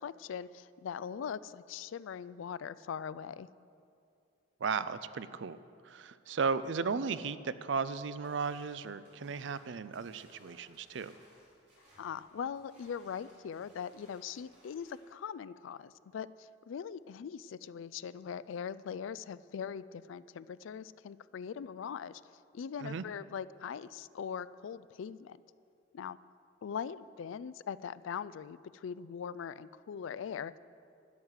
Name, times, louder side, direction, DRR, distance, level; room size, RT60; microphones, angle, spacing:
voice 1, 0.0-3.5 12.0-22.2 22.5-25.4 25.9-26.2 26.6-30.6, left 7 dB, 70° left, 17 dB, 0.3 m, -41 dB
voice 2, 4.6-5.6 5.8-11.1 22.8-23.0, right 5 dB, 65° right, 14 dB, 0.4 m, -35 dB
sound 1, 8.2-15.1, equal, 35° right, 3.9 m, -63 dB
12.5 x 6.5 x 9.7 m, 2.5 s
head